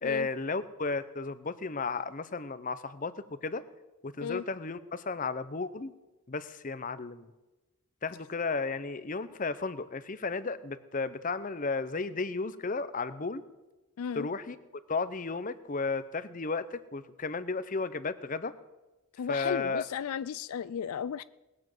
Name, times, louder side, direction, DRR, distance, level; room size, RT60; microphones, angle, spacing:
voice 1, 0.0-3.6 4.0-5.9 6.3-7.3 8.0-13.4 14.1-14.6 14.9-18.5 19.3-19.8, left 4 dB, 40° left, 14 dB, 0.7 m, -34 dB
voice 2, 14.0-14.3 19.2-21.2, left 8 dB, 85° left, 18 dB, 0.4 m, -35 dB
19.5 x 7.7 x 7.7 m, 1.1 s
head